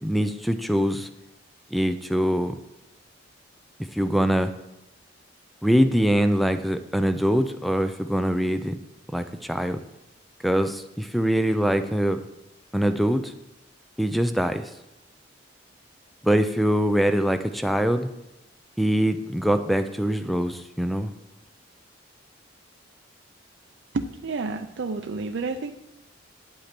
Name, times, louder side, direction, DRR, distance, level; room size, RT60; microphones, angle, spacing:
voice 1, 0.0-1.1 1.7-2.5 3.9-4.5 5.6-8.8 9.1-9.8 10.4-12.2 12.7-13.3 14.0-14.7 16.2-18.1 18.8-21.1, equal, ahead, 9 dB, 0.5 m, -23 dB
voice 2, 23.9-25.7, right 3 dB, 65° right, 6 dB, 0.5 m, -30 dB
8.8 x 8.3 x 6.0 m, 0.93 s
head